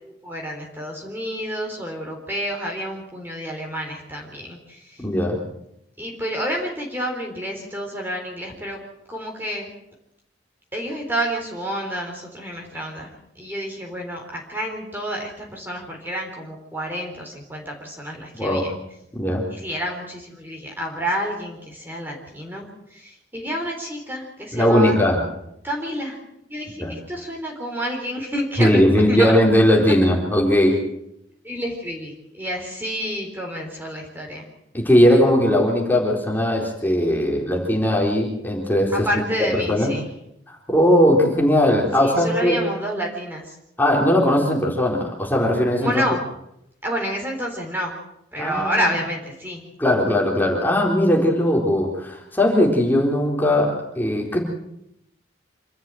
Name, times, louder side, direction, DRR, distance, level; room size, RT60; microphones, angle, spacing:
voice 1, 0.0-5.0 6.0-8.8 9.1-9.7 10.7-18.8 19.5-25.0 25.6-26.2 26.5-28.8 29.1-29.3 31.4-34.4 39.0-40.1 42.0-43.5 45.8-46.2 46.8-48.0 48.3-49.6, equal, 10° right, 0 dB, 4.0 m, -29 dB
voice 2, 5.0-5.4 18.4-18.7 19.1-19.4 24.5-25.2 26.8-26.9 28.6-30.8 34.7-39.1 39.5-39.9 40.5-42.7 43.8-45.9 48.4-48.9 49.8-54.4, left 1 dB, 10° left, -1 dB, 4.1 m, -19 dB
27.0 x 13.5 x 7.9 m, 0.79 s
head